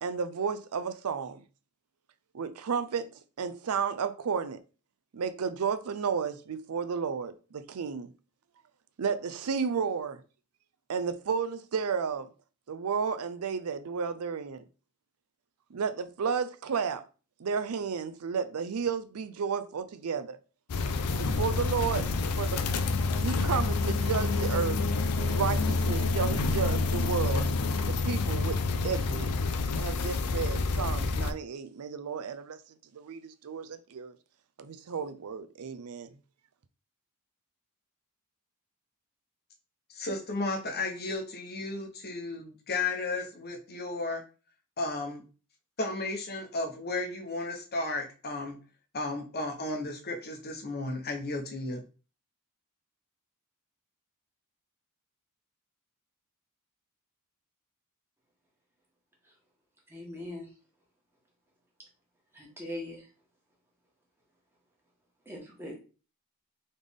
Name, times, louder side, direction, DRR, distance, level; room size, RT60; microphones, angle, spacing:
voice 1, 0.0-1.4 2.3-3.1 3.4-4.6 5.1-8.1 9.0-10.2 10.9-12.3 12.7-14.6 15.7-17.1 17.4-20.4 21.2-22.6 23.2-24.8 25.1-27.4 27.9-29.3 29.8-32.6 32.9-34.1 34.6-36.1, right 6 dB, 75° right, 0.5 m, -32 dB
sound 1, 20.7-31.3, left 3 dB, 80° left, 0.5 m, -28 dB
voice 2, 39.9-44.2 44.8-45.2 45.8-48.6 48.9-51.8, left 2 dB, 45° left, 0.9 m, -34 dB
voice 3, 59.9-60.5 62.3-63.1 65.2-65.8, left 1 dB, 10° right, 1.5 m, -40 dB
4.0 x 3.3 x 3.6 m
head